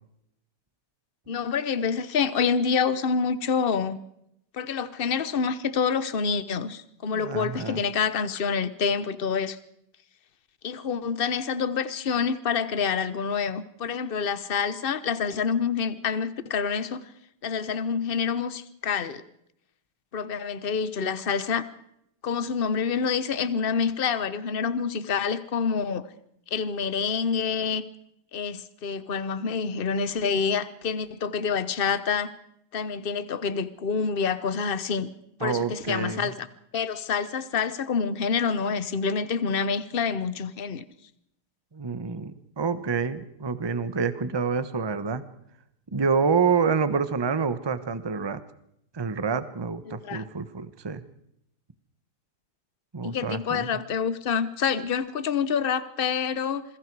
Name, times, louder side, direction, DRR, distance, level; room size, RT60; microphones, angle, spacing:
voice 1, 1.3-4.0 4.5-9.6 10.6-17.0 17.4-19.2 20.1-21.7 22.2-26.1 26.5-27.8 28.3-32.3 32.7-35.1 35.4-36.5 36.7-40.8 49.9-50.2 53.0-56.6, left 6 dB, 60° left, 14 dB, 0.5 m, -27 dB
voice 2, 7.1-7.8 35.4-36.3 41.7-45.2 45.9-48.4 48.9-51.0 52.9-53.7, right 5 dB, 25° right, 12 dB, 0.5 m, -27 dB
27.5 x 21.5 x 4.8 m, 0.77 s
omnidirectional pair, 2.4 m